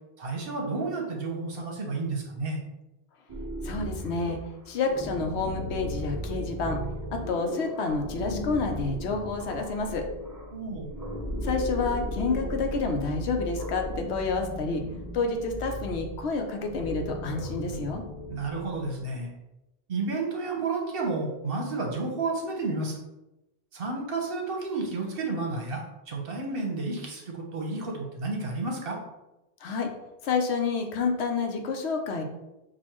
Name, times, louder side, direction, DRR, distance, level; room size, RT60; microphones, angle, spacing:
voice 1, 0.2-2.6 10.5-10.9 18.3-19.3 19.9-23.0 23.7-29.0, right 3 dB, 60° right, 0 dB, 1.1 m, -31 dB
sound 1, 3.3-19.1, equal, 25° right, 0.5 m, -36 dB
voice 2, 3.6-4.4 4.7-6.8 7.1-10.1 11.4-14.8 15.1-18.0 29.6-29.9 30.2-32.2, left 4 dB, 85° left, 4 dB, 1.0 m, -29 dB
6.2 x 2.5 x 2.9 m, 0.95 s
omnidirectional pair, 1.1 m